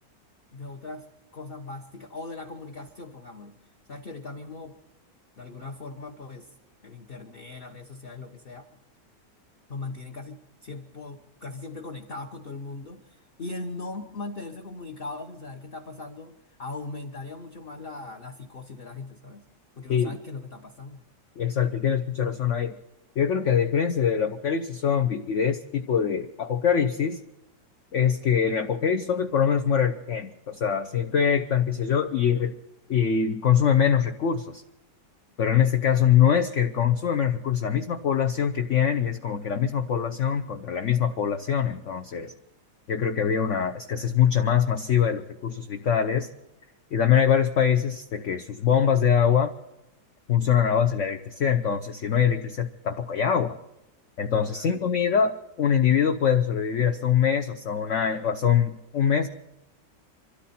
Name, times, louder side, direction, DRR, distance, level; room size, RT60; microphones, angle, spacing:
voice 1, 0.5-1.1 1.3-3.6 3.9-4.8 5.4-6.5 6.8-8.6 9.7-16.3 16.6-19.4 19.7-21.0 54.5-54.7, left 3 dB, 35° left, 1 dB, 1.2 m, -39 dB
voice 2, 21.4-22.8 23.2-27.2 27.9-32.6 32.9-34.6 35.4-42.3 42.9-46.3 46.9-49.5 50.3-53.6 54.2-59.3, left 8 dB, 55° left, 7 dB, 0.9 m, -23 dB
25.0 x 13.5 x 4.3 m, 0.92 s
omnidirectional pair, 1.9 m